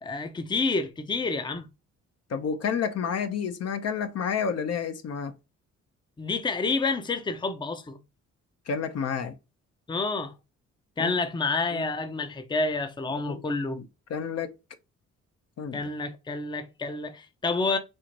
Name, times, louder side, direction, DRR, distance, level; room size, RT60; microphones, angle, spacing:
voice 1, 0.0-1.7 6.2-8.0 9.9-10.3 11.0-13.8 15.7-17.8, left 3 dB, 15° left, 0.6 m, -29 dB
voice 2, 2.3-5.3 8.7-9.3 11.0-11.1 11.7-11.8 13.1-13.4 13.7-13.8 14.1-14.6 15.6-15.8, left 6 dB, 55° left, 0.7 m, -30 dB
4.4 x 2.5 x 2.9 m
cardioid pair, 90°, 30 cm